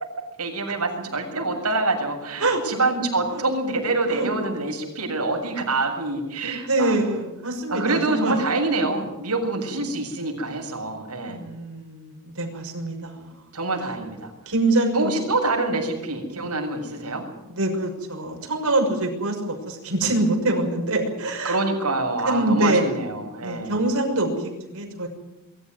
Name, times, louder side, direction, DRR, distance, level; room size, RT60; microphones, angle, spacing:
voice 1, 0.4-6.9 7.7-11.4 13.5-14.3 14.9-17.2 21.4-23.8, right 2 dB, 90° right, 2 dB, 7.4 m, -26 dB
voice 2, 6.7-8.4 11.3-13.4 14.5-15.1 16.9-17.0 17.5-21.6 22.2-22.9 23.4-25.1, right 2 dB, 70° right, 3 dB, 6.2 m, -24 dB
23.0 x 14.5 x 9.6 m, 1.0 s
head